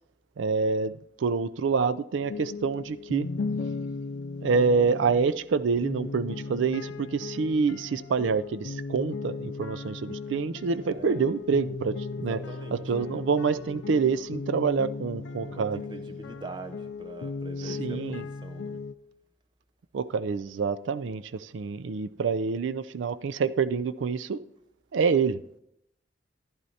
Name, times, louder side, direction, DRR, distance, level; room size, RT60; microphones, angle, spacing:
voice 1, 0.4-3.3 4.4-12.4 12.7-15.8 17.6-18.2 19.9-24.4 24.9-25.6, right 5 dB, 75° right, 0.4 m, -27 dB
sound 1, 2.2-18.9, left 4 dB, 70° left, 0.4 m, -37 dB
voice 2, 10.8-11.6 12.0-13.3 15.4-18.8, right 2 dB, 25° right, 0.6 m, -44 dB
14.5 x 10.5 x 2.8 m
head